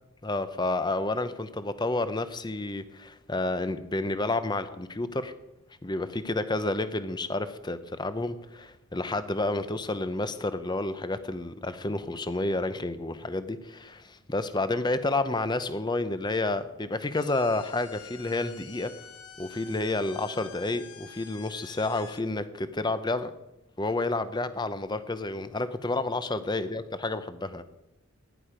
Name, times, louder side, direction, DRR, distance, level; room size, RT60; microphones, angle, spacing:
voice 1, 0.2-5.3 5.8-18.9 19.4-23.3 23.8-27.6, left 2 dB, 20° left, 12 dB, 0.7 m, -30 dB
sound 1, 17.1-22.2, left 8 dB, 85° left, 1.2 m, -48 dB
15.5 x 10.5 x 5.0 m, 0.93 s
head